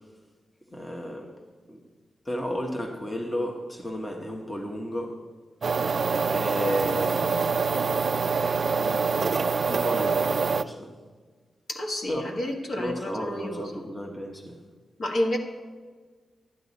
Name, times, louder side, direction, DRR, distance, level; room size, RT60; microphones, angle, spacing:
voice 1, 0.7-1.3 1.7-1.8 2.2-5.2 6.3-7.4 8.7-9.4 9.7-11.0 12.1-12.3 12.7-14.6, equal, 10° left, 2 dB, 1.1 m, -33 dB
sound 1, 5.6-10.6, right 5 dB, 45° right, 0.3 m, -25 dB
voice 2, 11.7-13.8 15.0-15.4, left 1 dB, 50° left, 2 dB, 1.3 m, -30 dB
11.5 x 9.6 x 4.0 m, 1.5 s
wide cardioid pair, 140°, 0 cm